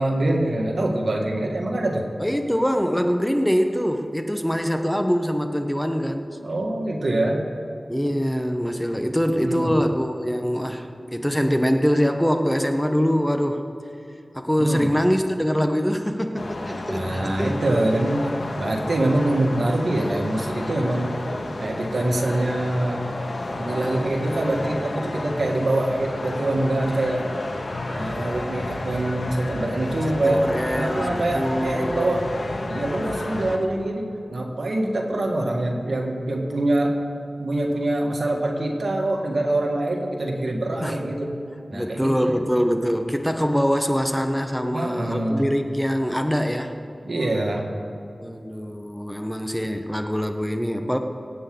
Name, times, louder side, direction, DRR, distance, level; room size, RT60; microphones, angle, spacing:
voice 1, 0.0-2.0 6.4-7.5 9.4-9.7 14.6-14.9 16.9-18.3 18.6-21.2 21.6-23.0 23.6-27.3 28.0-30.5 30.8-32.4 32.7-37.0 37.4-41.3 41.7-42.4 44.7-45.5 47.0-47.7, right 1 dB, 80° right, 0 dB, 1.9 m, -24 dB
voice 2, 2.2-6.3 7.9-13.6 14.3-17.5 30.1-32.1 40.8-41.0 41.7-46.7 48.2-51.0, equal, 5° left, 5 dB, 1.1 m, -24 dB
sound 1, 16.4-33.6, left 2 dB, 85° left, 1.7 m, -31 dB
24.5 x 8.9 x 3.9 m, 2.8 s
wide cardioid pair, 60°, 0 cm